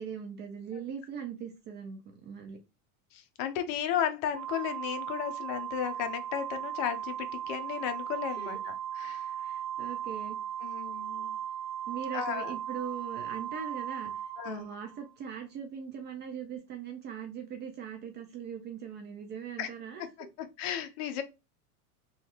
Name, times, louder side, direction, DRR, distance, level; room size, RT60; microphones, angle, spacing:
voice 1, 0.0-2.6 8.3-8.6 9.4-10.4 11.9-20.1, right 7 dB, 25° right, 0.3 m, -40 dB
voice 2, 3.1-9.3 10.6-11.4 12.1-12.5 14.4-14.7 19.6-19.7 20.4-21.2, left 9 dB, 50° left, 0.7 m, -34 dB
Organ, 4.4-15.1, right 10 dB, 65° right, 0.8 m, -37 dB
3.0 x 2.4 x 2.8 m
supercardioid pair, 130°, 45 cm